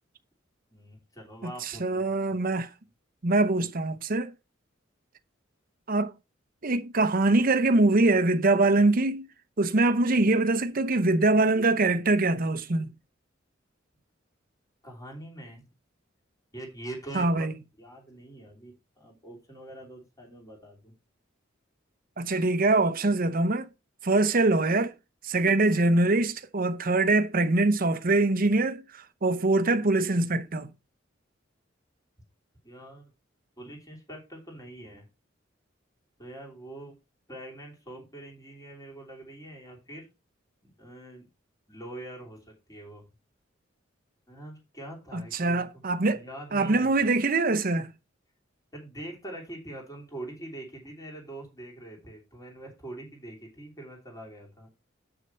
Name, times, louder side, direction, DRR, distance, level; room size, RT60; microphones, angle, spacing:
voice 1, 0.7-2.0 14.8-15.7 16.5-17.5 17.8-20.9 32.6-33.1 33.6-35.0 36.2-36.9 37.3-40.1 40.6-41.3 41.7-43.0 44.3-45.8 46.1-47.0 48.7-54.7, right 1 dB, 20° left, 3.0 m, -43 dB
voice 2, 1.4-2.7 3.2-4.3 5.9-6.1 6.6-9.3 9.6-12.9 17.1-17.5 22.2-23.7 24.0-24.9 25.2-28.8 29.2-30.7 45.1-46.2 46.5-47.9, right 2 dB, 45° right, 0.8 m, -23 dB
8.1 x 6.3 x 4.4 m
head